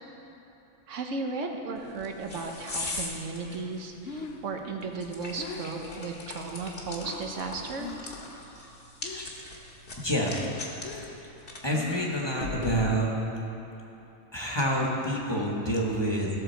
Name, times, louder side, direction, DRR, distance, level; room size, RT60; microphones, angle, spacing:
voice 1, 0.9-7.9, right 4 dB, 80° right, 3 dB, 1.2 m, -35 dB
sound 1, 1.8-13.2, left 2 dB, 50° left, 1.4 m, -41 dB
Breathing, 3.8-7.4 7.7-8.2 8.5-9.5 9.8-12.4, left 5 dB, 80° left, 1.1 m, -43 dB
voice 2, 10.0-10.4 11.6-13.1 14.3-16.3, equal, 20° left, -3 dB, 1.2 m, -27 dB
16.0 x 6.7 x 4.4 m, 3.0 s
omnidirectional pair, 1.3 m